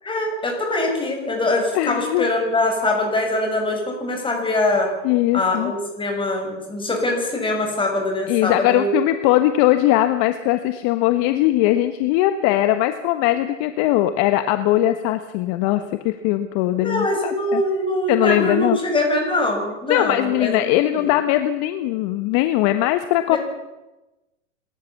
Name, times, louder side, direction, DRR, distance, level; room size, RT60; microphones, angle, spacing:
voice 1, 0.0-4.9 5.3-9.0 16.8-21.1 23.3-23.4, left 2 dB, 15° left, 2 dB, 6.7 m, -23 dB
voice 2, 1.7-2.3 5.0-5.7 8.3-17.6 18.1-18.8 19.9-23.4, left 14 dB, 45° left, 9 dB, 1.4 m, -20 dB
27.0 x 14.0 x 7.2 m, 1.0 s
hypercardioid pair, 115°, 37 cm